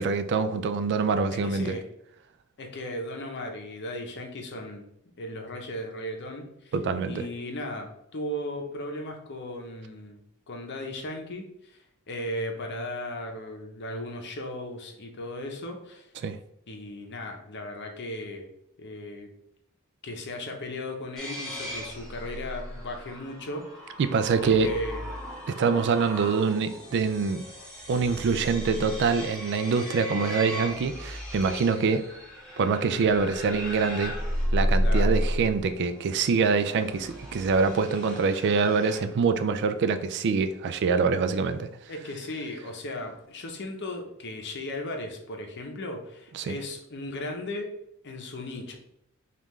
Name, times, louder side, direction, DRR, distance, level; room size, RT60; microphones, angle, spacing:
voice 1, 0.0-1.8 6.7-7.3 16.2-16.4 24.0-24.7 25.5-27.4 27.9-32.1 32.6-34.1 34.5-41.7 46.3-46.6, right 5 dB, 55° right, 0.3 m, -25 dB
voice 2, 1.3-1.9 2.6-4.8 5.2-6.7 7.1-10.2 10.5-11.8 12.1-16.1 16.7-18.5 18.8-19.3 20.0-23.6 24.4-25.1 34.8-35.1 41.9-47.7 48.0-48.8, left 1 dB, 55° left, 0.7 m, -36 dB
sound 1, 21.2-39.0, equal, ahead, 1.2 m, -33 dB
5.3 x 2.5 x 3.1 m
head